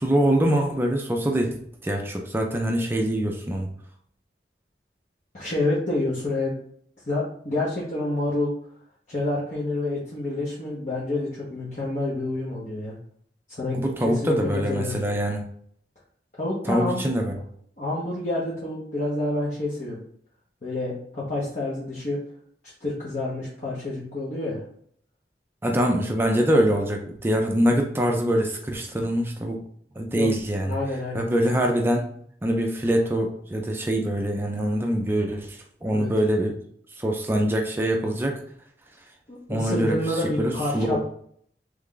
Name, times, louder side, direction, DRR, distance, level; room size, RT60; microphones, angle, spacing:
voice 1, 0.0-1.6 1.8-3.7 13.7-15.5 16.7-17.3 25.6-29.6 30.0-30.8 31.1-32.1 32.4-36.6 37.0-38.4 39.5-40.0 40.4-41.0, right 1 dB, 15° right, 2 dB, 0.4 m, -24 dB
voice 2, 5.3-6.6 7.1-8.5 9.1-13.0 13.5-15.0 16.4-17.1 17.8-20.0 20.6-22.2 22.6-24.6 30.1-30.3 30.6-31.2 31.6-31.8 35.8-36.1 39.3-41.0, left 2 dB, 45° left, -7 dB, 0.8 m, -28 dB
3.1 x 2.3 x 3.7 m, 0.63 s
head